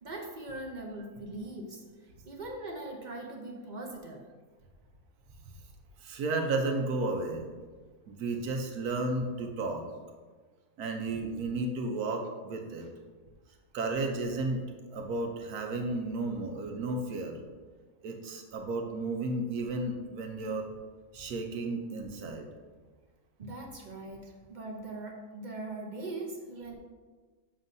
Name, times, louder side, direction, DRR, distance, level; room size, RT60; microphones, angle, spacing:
voice 1, 0.0-1.8 2.2-4.2 12.8-12.9 23.4-26.7, right 2 dB, 40° right, 0 dB, 0.7 m, -41 dB
voice 2, 6.0-7.4 8.1-9.8 10.8-12.9 13.7-14.6 14.9-17.4 18.0-20.6 21.1-22.5, right 2 dB, 85° right, 3 dB, 1.3 m, -33 dB
7.3 x 6.2 x 2.7 m, 1.4 s
omnidirectional pair, 1.6 m